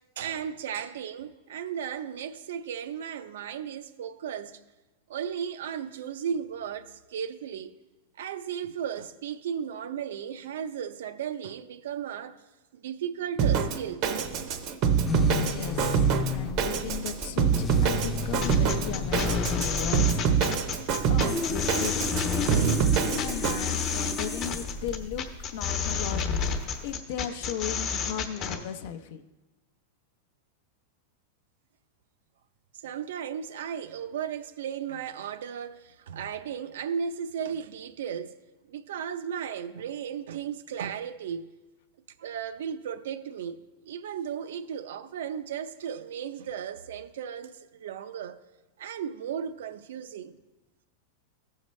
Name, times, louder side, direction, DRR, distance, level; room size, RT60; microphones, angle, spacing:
voice 1, 0.2-4.6 5.1-7.8 8.2-12.4 12.7-14.1 32.8-38.4 38.7-41.5 42.2-48.4 48.8-50.4, right 8 dB, 80° right, 0.5 m, -35 dB
Drum kit, 13.4-23.6, right 7 dB, 40° right, 0.6 m, -26 dB
sound 1, 15.0-26.9, left 3 dB, 10° left, 0.6 m, -33 dB
voice 2, 15.3-20.4 21.1-22.8 23.1-29.2, left 9 dB, 60° left, 0.6 m, -37 dB
sound 2, 18.4-28.6, left 6 dB, 35° left, 0.9 m, -31 dB
15.0 x 6.5 x 3.2 m
supercardioid pair, 155°, 0 cm